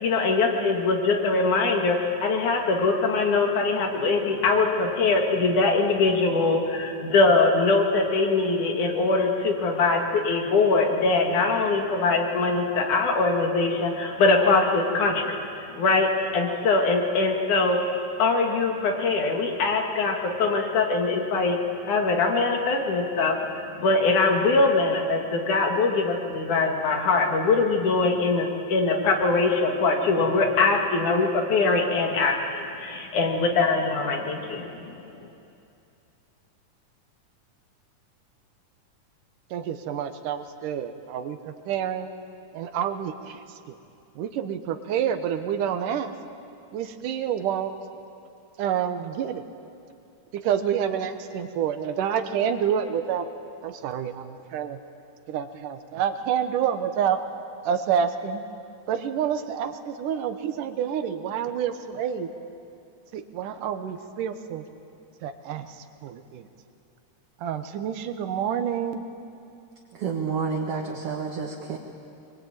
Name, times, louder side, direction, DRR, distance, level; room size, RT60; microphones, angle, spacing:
voice 1, 0.0-15.4 15.8-23.3 23.8-35.3, left 3 dB, 70° left, 2 dB, 3.4 m, -22 dB
voice 2, 39.5-42.1 42.5-43.8 44.2-46.1 46.7-47.7 48.6-49.4 50.3-53.3 53.6-54.8 55.3-57.2 57.6-58.4 58.9-62.3 63.1-64.6 65.2-66.5 67.4-69.0, right 8 dB, 85° right, 9 dB, 2.8 m, -28 dB
voice 3, 69.9-71.8, right 5 dB, 55° right, 0 dB, 2.2 m, -29 dB
23.0 x 22.5 x 8.9 m, 2.6 s
omnidirectional pair, 3.7 m